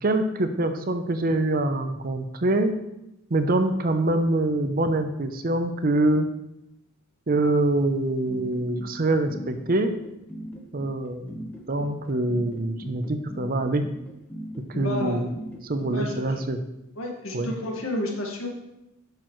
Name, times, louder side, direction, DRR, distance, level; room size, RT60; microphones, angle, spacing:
voice 1, 0.0-2.8 3.3-6.3 7.3-9.9 10.7-11.4 11.7-13.9 14.7-15.3 15.6-16.6 17.3-17.5, right 2 dB, 45° right, 8 dB, 0.6 m, -24 dB
sound 1, 8.3-15.9, equal, 10° left, 1.1 m, -39 dB
voice 2, 14.7-15.2 15.9-16.4 17.0-18.5, left 1 dB, 75° left, 0 dB, 1.8 m, -31 dB
10.0 x 6.8 x 3.1 m, 0.89 s
head